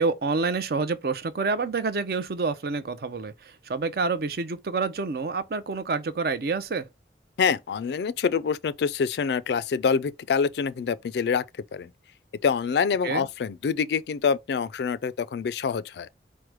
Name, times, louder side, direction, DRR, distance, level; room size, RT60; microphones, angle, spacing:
voice 1, 0.0-6.9 13.0-13.3, right 4 dB, 55° right, 0.5 m, -28 dB
voice 2, 7.4-11.4 11.7-11.9 12.4-16.1, left 6 dB, 65° left, 0.3 m, -26 dB
4.7 x 2.1 x 4.6 m
head